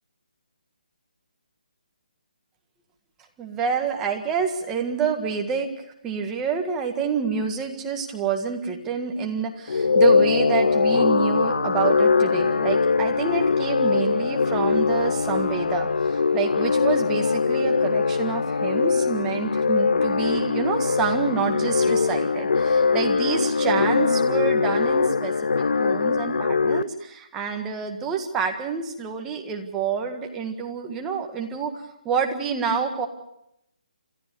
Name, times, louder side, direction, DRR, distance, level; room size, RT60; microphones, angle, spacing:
voice 1, 3.4-5.7 6.0-31.7 32.1-33.1, right 6 dB, 10° right, 3 dB, 1.7 m, -28 dB
sound 1, 9.7-26.8, left 4 dB, 80° left, 0.7 m, -22 dB
28.0 x 13.5 x 6.9 m, 0.77 s
hypercardioid pair, 165°, 5 cm